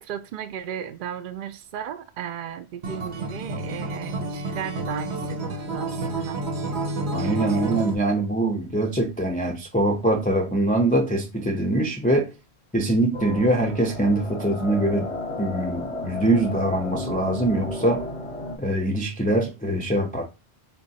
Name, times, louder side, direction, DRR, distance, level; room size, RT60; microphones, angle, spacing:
voice 1, 0.0-6.4 7.2-7.7, right 9 dB, 60° right, 0.6 m, -35 dB
Acoustic guitar, 2.8-8.0, right 2 dB, 85° right, 1.1 m, -30 dB
voice 2, 7.1-12.3 12.7-15.1 15.4-18.1 18.6-20.2, right 1 dB, 10° left, 0.4 m, -23 dB
sound 1, 13.1-18.6, left 1 dB, 35° left, 0.8 m, -33 dB
4.5 x 2.2 x 4.0 m
omnidirectional pair, 1.1 m